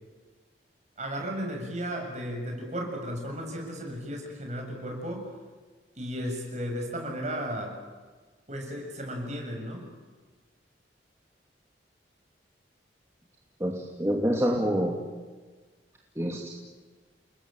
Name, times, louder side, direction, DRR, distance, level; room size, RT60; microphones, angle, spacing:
voice 1, 1.0-5.3 6.0-7.8 8.5-9.9, equal, 40° right, 2 dB, 7.1 m, -34 dB
voice 2, 13.6-14.9 16.2-16.5, equal, 15° right, -1 dB, 2.7 m, -27 dB
30.0 x 21.0 x 9.0 m, 1.4 s
head